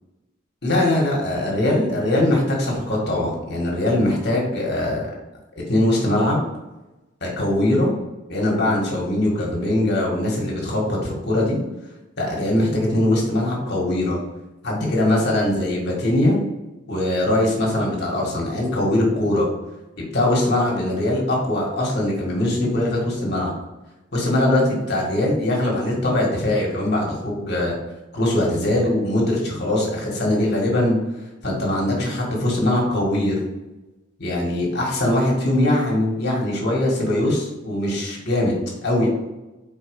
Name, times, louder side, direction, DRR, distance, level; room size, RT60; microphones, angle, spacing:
voice 1, 0.6-5.1 5.7-6.4 7.2-7.9 8.3-11.6 12.2-14.2 14.6-16.4 16.9-19.5 20.0-23.5 24.1-27.8 28.1-31.0 31.4-33.4 34.2-38.5 38.8-39.1, left 1 dB, 55° left, -2 dB, 2.0 m, -21 dB
5.1 x 4.5 x 4.9 m, 1.0 s
head